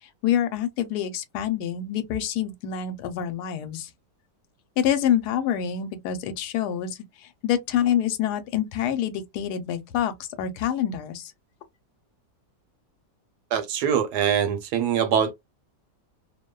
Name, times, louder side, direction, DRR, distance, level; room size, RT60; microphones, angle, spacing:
voice 1, 0.2-3.9 4.8-7.0 7.4-11.3, left 10 dB, 75° left, 1.1 m, -26 dB
voice 2, 13.5-15.3, right 8 dB, 75° right, 1.1 m, -23 dB
2.8 x 2.1 x 2.2 m
omnidirectional pair, 1.9 m